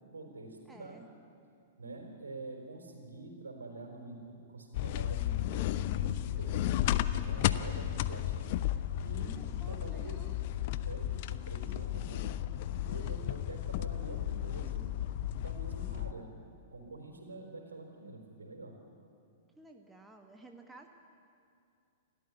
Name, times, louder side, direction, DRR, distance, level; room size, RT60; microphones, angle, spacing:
voice 1, 0.1-1.0 1.8-6.8 7.2-8.5 9.0-10.3 10.9-12.3 12.9-14.9 15.4-16.3 16.7-18.8, right 2 dB, 75° right, 4 dB, 4.2 m, -46 dB
voice 2, 0.7-1.0 9.2-10.4 19.5-20.9, right 2 dB, 5° right, 3 dB, 1.6 m, -54 dB
sound 1, 4.7-16.1, left 12 dB, 45° left, 0.7 m, -33 dB
29.0 x 13.5 x 9.8 m, 2.4 s
figure-of-eight pair, 105°, 0 cm